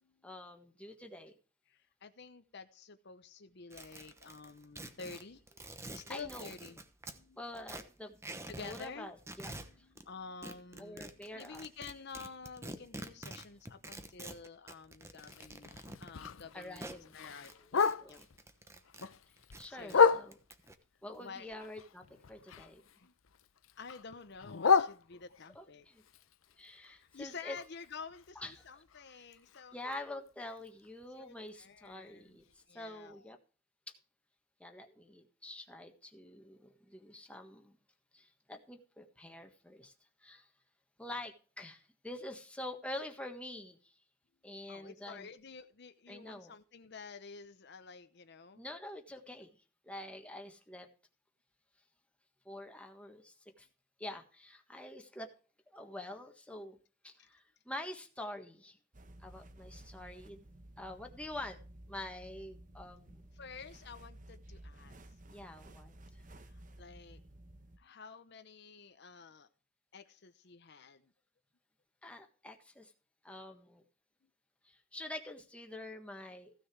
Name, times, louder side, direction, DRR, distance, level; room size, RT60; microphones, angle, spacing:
voice 1, 0.2-1.3 6.1-6.5 7.3-8.2 8.6-9.5 9.8-9.9 10.8-11.6 16.5-17.3 17.6-18.3 19.6-20.4 21.0-22.8 25.5-26.0 26.6-27.6 28.3-29.3 29.7-33.4 34.6-37.8 38.1-39.9 40.2-40.5 41.0-44.0 44.4-45.3 46.1-46.5 48.5-49.6 49.8-50.9 52.4-53.7 54.0-55.3 55.7-56.8 57.0-58.8 59.2-60.5 60.8-61.6 61.9-63.3 65.3-66.2 72.0-72.9 73.2-73.8 74.6-76.5, left 1 dB, 5° left, 4 dB, 1.5 m, -46 dB
voice 2, 1.7-5.4 5.9-6.8 7.1-7.4 8.5-9.1 9.8-15.7 16.0-16.8 17.1-18.2 19.7-20.2 21.2-21.5 23.0-23.1 23.8-25.8 26.8-29.7 31.2-32.2 32.7-33.2 44.7-48.6 57.2-57.3 63.4-65.0 66.4-67.2 67.8-69.5 69.9-71.0, left 5 dB, 55° left, 9 dB, 0.8 m, -50 dB
sound 1, 3.7-7.2 7.5-8.9 9.2-10.0 10.4-17.0 17.4-19.1 19.4-20.7, right 2 dB, 15° right, 1.0 m, -47 dB
Bark, 15.2-18.4 18.8-20.7 21.1-23.0 23.2-25.6 26.0-29.9 30.3-30.4 30.7-31.0 31.5-31.6 31.9-32.0 32.5-32.6, left 5 dB, 85° left, 0.7 m, -33 dB
sound 2, 58.9-67.8, right 1 dB, 40° right, 1.0 m, -54 dB
15.5 x 6.4 x 4.6 m, 0.37 s
head